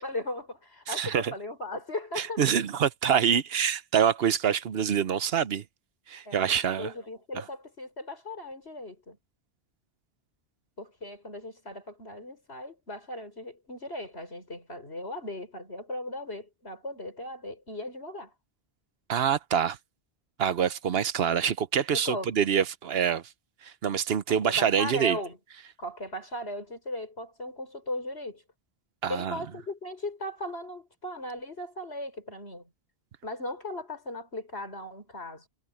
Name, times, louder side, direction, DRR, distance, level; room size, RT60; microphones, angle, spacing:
voice 1, 0.0-2.4 6.2-6.4 6.8-9.2 10.8-18.3 21.9-22.3 24.3-25.4 25.8-28.4 29.1-32.6 33.2-35.5, left 1 dB, 90° left, 6.7 m, -37 dB
voice 2, 0.9-1.3 2.2-5.6 6.1-6.9 7.3-7.4 19.1-19.8 20.4-23.2 23.6-25.2 29.0-29.4, right 8 dB, 70° right, 1.0 m, -26 dB
omnidirectional pair, 1.1 m